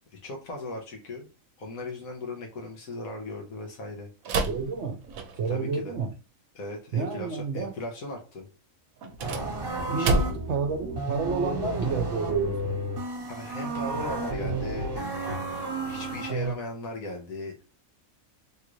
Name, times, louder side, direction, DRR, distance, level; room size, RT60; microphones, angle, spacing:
voice 1, 0.2-1.2 1.6-4.1 5.5-6.0 6.5-8.5 9.9-10.3 13.3-15.2 15.8-17.6, left 2 dB, 85° left, 1.4 m, -37 dB
sound 1, 4.2-5.6 9.0-10.6, right 2 dB, 80° right, 1.0 m, -29 dB
voice 2, 4.5-5.0 5.4-6.1 6.9-7.7 9.9-10.2 10.5-12.8, right 5 dB, 60° right, 0.9 m, -29 dB
sound 2, 9.2-16.5, right 2 dB, 45° right, 1.2 m, -32 dB
3.6 x 2.5 x 3.0 m
omnidirectional pair, 1.4 m